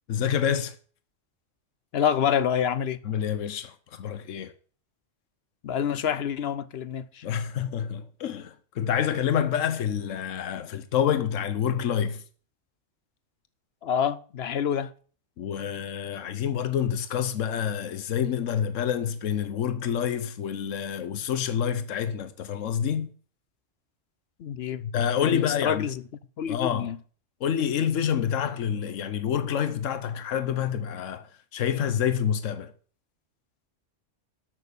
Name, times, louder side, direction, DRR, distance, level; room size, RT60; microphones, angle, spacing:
voice 1, 0.1-0.7 3.0-4.5 7.2-12.2 15.4-23.1 24.8-25.8 26.5-26.9 27.4-32.7, left 8 dB, 85° left, 1.2 m, -27 dB
voice 2, 1.9-3.0 5.6-7.2 13.8-14.9 24.4-24.8 25.2-26.0 26.4-27.0, left 8 dB, 60° left, 0.8 m, -27 dB
12.0 x 6.7 x 6.7 m
omnidirectional pair, 1.3 m